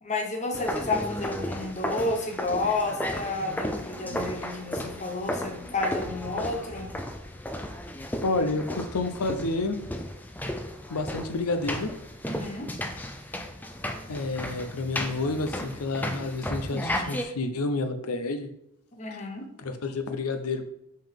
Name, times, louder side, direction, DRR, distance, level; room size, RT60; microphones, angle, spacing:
voice 1, 0.0-6.9 12.2-12.7 18.9-19.5, left 2 dB, 30° left, 3 dB, 0.9 m, -31 dB
sound 1, 0.5-17.2, left 1 dB, 10° left, 0.4 m, -34 dB
voice 2, 8.2-9.8 10.9-11.9 14.1-18.5 19.6-20.7, left 3 dB, 85° left, 8 dB, 0.7 m, -29 dB
5.5 x 5.3 x 3.6 m, 0.77 s
head